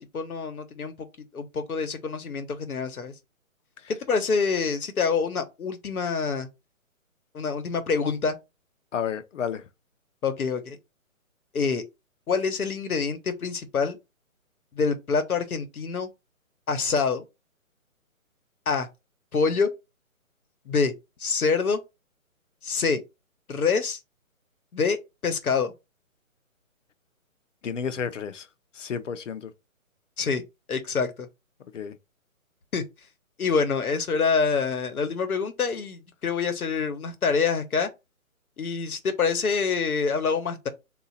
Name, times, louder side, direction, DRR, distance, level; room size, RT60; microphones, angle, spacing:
voice 1, 0.1-0.9 1.3-3.1 3.9-6.5 7.3-8.4 10.2-10.8 11.5-11.8 12.3-14.0 14.7-16.1 16.7-17.2 18.7-18.9 19.3-19.7 20.7-20.9 21.2-21.8 22.6-23.0 23.5-24.0 24.7-25.0 25.2-25.7 30.2-30.4 30.7-31.3 32.7-32.8 33.4-37.9 38.6-40.7, left 5 dB, 90° left, 1.2 m, -26 dB
voice 2, 8.9-9.6 27.6-28.5 28.8-29.5 31.7-31.9, left 7 dB, 60° left, 0.7 m, -31 dB
3.7 x 2.8 x 4.1 m
hypercardioid pair, 160°, 42 cm